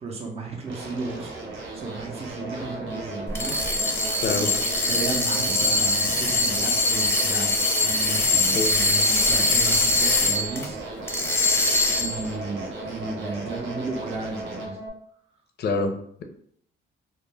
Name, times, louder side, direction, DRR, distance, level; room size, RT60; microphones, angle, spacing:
voice 1, 0.0-3.6 4.0-10.8 12.0-14.8, right 3 dB, 30° right, 0 dB, 0.6 m, -34 dB
sound 1, 0.7-14.7, right 3 dB, 85° right, 0.6 m, -37 dB
sound 2, 2.3-14.9, right 1 dB, 60° right, 0.8 m, -39 dB
sound 3, 3.3-10.7 11.1-12.3, left 2 dB, 10° left, 0.6 m, -22 dB
voice 2, 4.2-4.5 8.5-8.8 15.6-16.2, left 3 dB, 55° left, 5 dB, 0.5 m, -26 dB
2.1 x 2.1 x 3.3 m, 0.64 s
cardioid pair, 90°, 20 cm